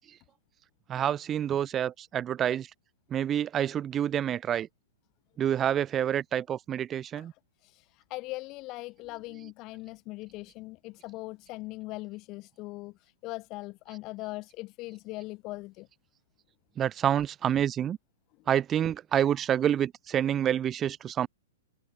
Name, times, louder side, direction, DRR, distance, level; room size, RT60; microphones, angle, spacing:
voice 1, 0.9-2.7 3.1-4.7 5.4-7.3 16.8-18.0 18.5-21.3, right 10 dB, 20° right, 0.6 m, -28 dB
voice 2, 7.6-15.9, left 21 dB, 35° left, 1.8 m, -40 dB
hypercardioid pair, 145°, 0 cm